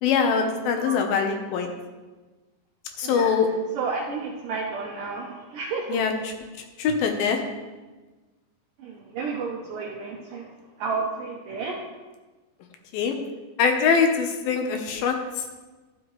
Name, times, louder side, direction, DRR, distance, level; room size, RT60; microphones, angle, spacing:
voice 1, 0.0-1.7 3.0-3.5 5.9-6.3 6.8-7.4 12.9-13.2 13.6-15.2, left 6 dB, 70° left, 4 dB, 2.5 m, -23 dB
voice 2, 3.7-6.0 8.8-10.5 10.8-11.8, right 4 dB, 90° right, -1 dB, 1.8 m, -31 dB
12.5 x 8.4 x 3.1 m, 1.2 s
omnidirectional pair, 4.9 m